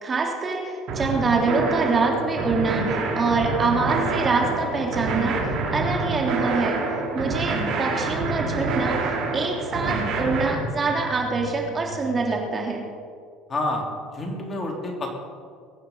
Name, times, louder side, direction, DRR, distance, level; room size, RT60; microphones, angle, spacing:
voice 1, 0.0-6.8 7.1-12.8, right 4 dB, 30° right, 0 dB, 3.2 m, -25 dB
sound 1, 0.9-10.5, right 3 dB, 60° right, 4.2 m, -27 dB
sound 2, 1.6-12.5, right 2 dB, 85° right, 3.9 m, -40 dB
voice 2, 13.5-13.8 14.1-15.2, left 2 dB, 30° left, 1 dB, 3.2 m, -28 dB
22.0 x 9.3 x 5.6 m, 2.2 s
supercardioid pair, 90°, 0 cm